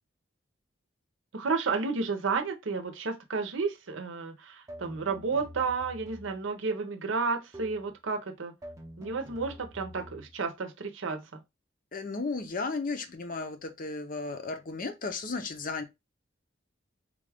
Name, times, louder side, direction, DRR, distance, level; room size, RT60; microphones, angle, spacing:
voice 1, 1.3-8.5 9.0-11.4, right 4 dB, 80° right, 0.7 m, -32 dB
sound 1, 4.7-6.5 7.5-8.0 8.6-10.4, equal, 15° right, 0.6 m, -47 dB
voice 2, 11.9-15.8, left 3 dB, 45° left, 0.6 m, -34 dB
3.7 x 2.3 x 3.4 m
head